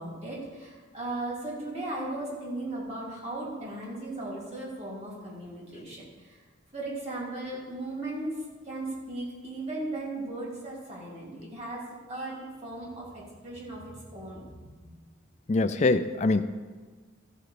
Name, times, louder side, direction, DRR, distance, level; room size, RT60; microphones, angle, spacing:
voice 1, 0.0-6.0 6.7-11.8 12.1-14.7, right 2 dB, 30° right, -5 dB, 3.1 m, -37 dB
voice 2, 15.5-16.4, left 3 dB, 35° left, 10 dB, 0.4 m, -23 dB
14.5 x 5.1 x 6.8 m, 1.5 s
head